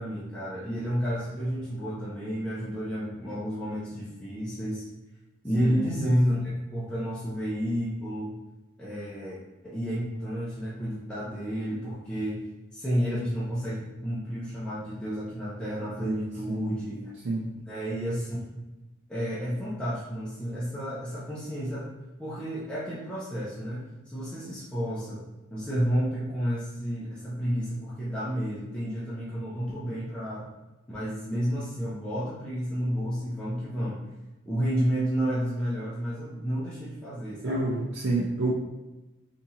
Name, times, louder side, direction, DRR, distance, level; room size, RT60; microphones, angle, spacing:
voice 1, 0.0-4.9 5.4-8.3 8.8-12.4 12.7-17.1 17.7-18.5 19.1-21.9 22.2-25.2 25.5-30.5 30.9-34.1 34.5-37.7, equal, 5° left, -9 dB, 0.5 m, -31 dB
voice 2, 5.6-5.9 16.0-16.8 17.2-17.5 37.4-38.5, right 2 dB, 65° right, -4 dB, 0.4 m, -29 dB
3.5 x 2.8 x 2.8 m, 1.1 s
head